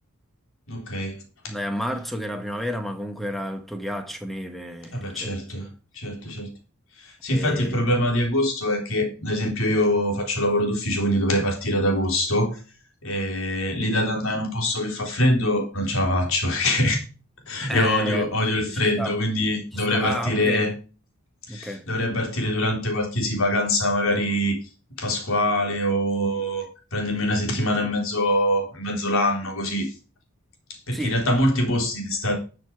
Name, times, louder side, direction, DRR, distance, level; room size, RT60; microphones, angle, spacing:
voice 1, 0.7-1.2 1.4-1.5 4.9-5.7 5.9-6.5 7.0-12.6 13.0-17.0 17.5-20.7 21.5-24.6 25.0-29.9 30.7-32.3, left 1 dB, 70° left, 3.6 m, -24 dB
voice 2, 1.5-5.7 7.3-8.0 17.7-19.2 19.7-20.7 21.5-21.8 30.9-31.2, equal, ahead, 1.4 m, -31 dB
12.5 x 6.8 x 4.8 m
head